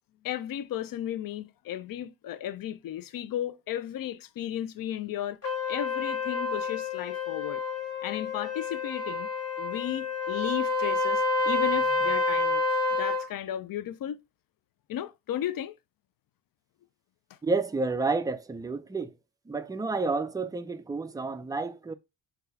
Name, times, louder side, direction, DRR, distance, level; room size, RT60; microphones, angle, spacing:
voice 1, 0.2-5.4 5.7-7.6 8.0-9.3 9.6-12.6 12.9-14.2 14.9-15.8, left 11 dB, 50° left, 0.5 m, -34 dB
Trumpet, 5.4-13.3, left 3 dB, 35° left, 1.4 m, -29 dB
voice 2, 17.4-19.1 19.5-21.9, right 3 dB, 10° right, 0.3 m, -30 dB
3.8 x 2.3 x 2.6 m
supercardioid pair, 55°, 45 cm